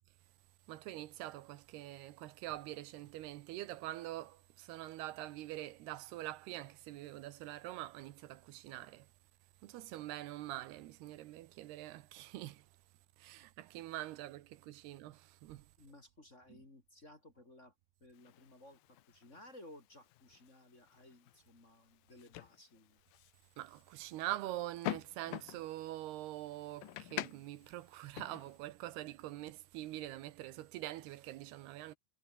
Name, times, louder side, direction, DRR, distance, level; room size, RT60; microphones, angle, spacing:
voice 1, 0.7-9.1 9.6-12.7 13.2-15.7 16.5-16.6 23.6-32.0, right 15 dB, 85° right, 3.1 m, -44 dB
voice 2, 15.8-17.7 18.0-23.0, left 1 dB, 20° left, 2.9 m, -58 dB
sound 1, 18.1-28.6, left 16 dB, 70° left, 2.3 m, -48 dB
omnidirectional pair, 4.5 m